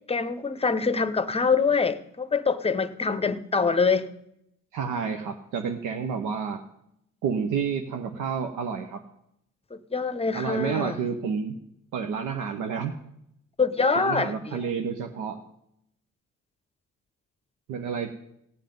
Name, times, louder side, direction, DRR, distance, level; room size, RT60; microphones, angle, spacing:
voice 1, 0.1-4.1 9.7-11.0 13.6-14.7, left 4 dB, 20° left, 0.8 m, -25 dB
voice 2, 4.7-6.6 7.2-9.0 10.3-11.5 11.9-12.9 13.9-15.4 17.7-18.1, right 6 dB, 85° right, 0.9 m, -30 dB
17.5 x 7.6 x 5.3 m
cardioid pair, 90°, 30 cm